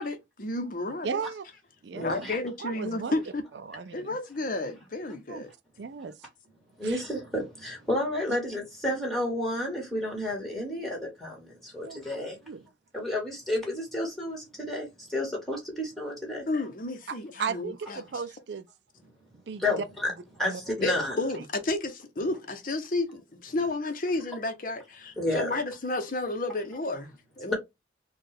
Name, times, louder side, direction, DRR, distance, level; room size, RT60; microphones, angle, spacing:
voice 1, 0.0-1.2 2.0-3.5 3.9-5.5 16.5-18.0 20.8-27.5, left 2 dB, 45° left, 0.7 m, -32 dB
voice 2, 1.0-1.5 1.8-2.2 2.6-3.1 3.6-4.2 5.1-5.4 5.8-6.2 6.8-7.0 11.8-12.0 12.5-12.7 17.1-18.7 19.5-19.9 20.4-20.9, right 5 dB, 65° right, 0.4 m, -36 dB
voice 3, 2.0-2.4 6.8-11.4 11.7-12.3 12.9-14.9 15.1-16.4 19.6-20.1 20.4-21.2 25.2-25.6, left 1 dB, ahead, 1.7 m, -31 dB
4.3 x 2.3 x 3.3 m
head